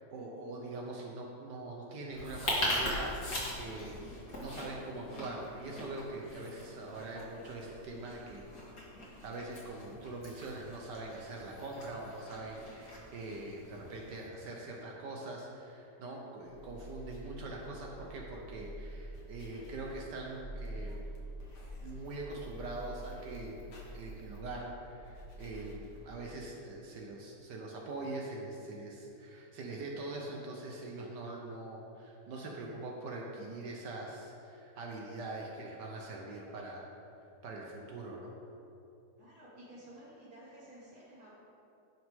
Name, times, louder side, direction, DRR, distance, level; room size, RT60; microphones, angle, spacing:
voice 1, 0.0-8.5 9.2-21.1 21.8-23.6 23.9-36.9 37.4-38.3, right 2 dB, 80° right, -1 dB, 1.6 m, -43 dB
sound 1, 2.1-14.2, left 1 dB, 55° left, 2.5 m, -41 dB
sound 2, 16.4-26.4, right 1 dB, 75° left, 2.3 m, -47 dB
voice 2, 39.1-41.3, right 1 dB, 60° right, -11 dB, 3.2 m, -53 dB
17.0 x 6.0 x 3.7 m, 2.7 s
omnidirectional pair, 1.8 m